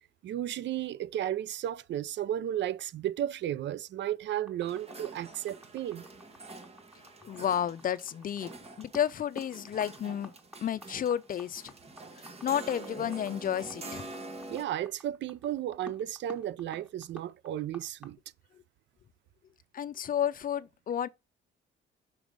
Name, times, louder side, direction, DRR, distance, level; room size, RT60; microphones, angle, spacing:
voice 1, 0.2-6.0 14.5-18.2, right 11 dB, 65° right, 0.4 m, -34 dB
sound 1, 4.5-18.1, left 1 dB, 5° right, 1.5 m, -51 dB
sound 2, 4.6-14.6, right 2 dB, 30° right, 1.3 m, -46 dB
voice 2, 7.2-8.5 8.8-10.3 10.6-11.7 12.2-14.1 19.7-21.1, left 9 dB, 45° left, 0.5 m, -31 dB
6.0 x 3.6 x 4.9 m
cardioid pair, 90°, 20 cm